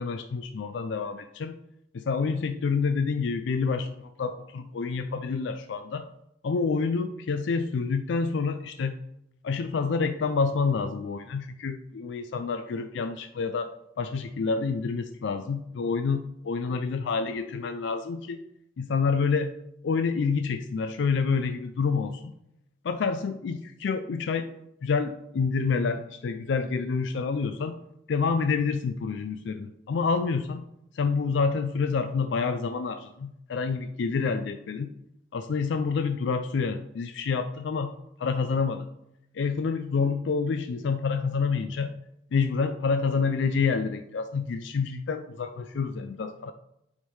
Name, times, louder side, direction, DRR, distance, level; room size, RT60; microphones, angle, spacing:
voice 1, 0.0-1.6 1.9-6.1 6.4-9.0 9.4-18.4 18.8-19.5 19.8-22.3 22.8-24.5 24.8-27.8 28.1-30.7 30.9-34.9 35.3-38.9 39.3-41.9 42.3-46.5, left 5 dB, 65° left, 9 dB, 0.4 m, -28 dB
8.9 x 3.6 x 4.7 m, 0.81 s
head